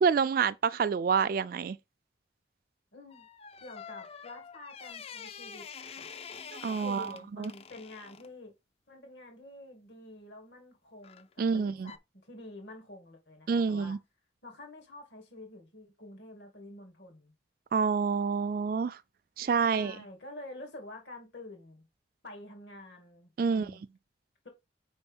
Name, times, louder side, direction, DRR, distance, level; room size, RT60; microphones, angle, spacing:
voice 1, 0.0-1.8 6.5-7.1 7.4-7.5 11.4-11.9 13.5-14.0 17.7-19.0 19.4-20.0 23.4-23.7, right 5 dB, 50° right, 0.3 m, -27 dB
voice 2, 2.9-3.3 3.6-6.2 6.8-8.5 8.9-12.0 12.2-14.0 14.4-17.3 19.5-21.8 22.2-23.8, left 1 dB, 75° left, 2.3 m, -48 dB
sound 1, 3.1-8.3 11.0-11.3 11.8-12.0, left 6 dB, 35° left, 0.4 m, -46 dB
4.9 x 4.3 x 5.3 m
head